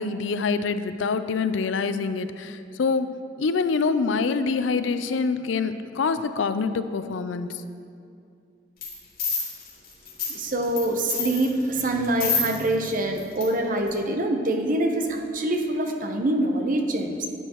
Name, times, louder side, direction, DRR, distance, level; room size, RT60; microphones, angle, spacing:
voice 1, 0.0-3.1 3.4-7.5, left 4 dB, 85° left, 11 dB, 0.4 m, -25 dB
sound 1, 8.8-8.9 9.2-10.8 11.1-12.9 13.2-13.4 13.9-14.0, left 5 dB, 55° left, 2.6 m, -27 dB
voice 2, 10.3-17.3, right 1 dB, 45° right, 4 dB, 0.8 m, -25 dB
10.5 x 9.8 x 3.0 m, 2.4 s
head